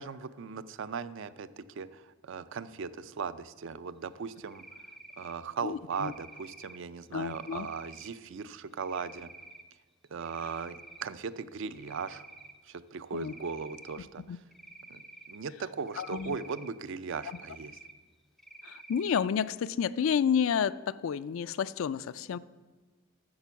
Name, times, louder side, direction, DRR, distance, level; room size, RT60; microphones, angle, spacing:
voice 1, 0.0-4.6 5.2-9.3 10.1-12.2 12.6-14.4 14.9-15.0 15.3-17.8, right 5 dB, 60° right, 15 dB, 0.4 m, -38 dB
Cricket, 4.5-5.4 5.9-6.8 7.2-8.1 8.8-9.6 10.1-11.0 11.4-12.6 13.2-14.0 14.5-15.4 15.9-16.7 17.1-17.9 18.4-19.2, right 2 dB, ahead, 0.5 m, -50 dB
voice 2, 5.6-6.1 7.1-7.7 13.1-13.3 14.3-14.4 16.0-16.4 18.6-22.4, left 7 dB, 70° left, 16 dB, 0.3 m, -30 dB
8.8 x 6.9 x 7.0 m, 1.3 s
head